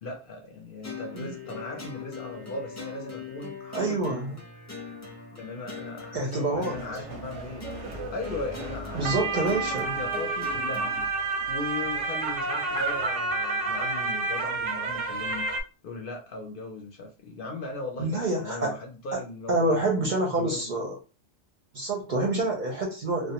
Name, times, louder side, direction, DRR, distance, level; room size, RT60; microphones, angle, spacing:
voice 1, 0.0-4.0 5.3-7.7 8.1-9.4 9.7-10.9 11.5-15.5 15.8-20.7, left 2 dB, 60° left, 1 dB, 0.6 m, -38 dB
sound 1, 0.8-11.1, left 4 dB, 20° left, 0.5 m, -41 dB
voice 2, 3.7-4.4 6.1-6.8 8.9-9.9 18.0-18.8 19.1-19.2 19.5-20.9 21.7-23.3, right 2 dB, 55° right, 0 dB, 0.6 m, -27 dB
sound 2, 6.7-15.6, right 3 dB, 90° right, 0.9 m, -30 dB
2.3 x 2.1 x 2.8 m, 0.33 s
omnidirectional pair, 1.2 m